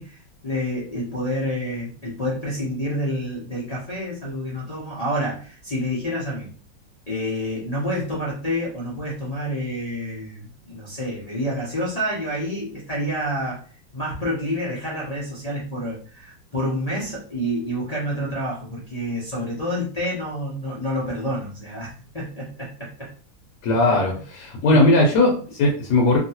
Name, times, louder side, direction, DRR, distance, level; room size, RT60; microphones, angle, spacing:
voice 1, 0.0-6.5 7.1-13.6 13.9-23.1 23.9-24.2 24.7-24.9, equal, 45° left, -7 dB, 0.5 m, -28 dB
voice 2, 23.6-26.2, left 2 dB, 65° left, -1 dB, 1.2 m, -18 dB
2.9 x 2.8 x 2.8 m, 0.42 s
omnidirectional pair, 2.1 m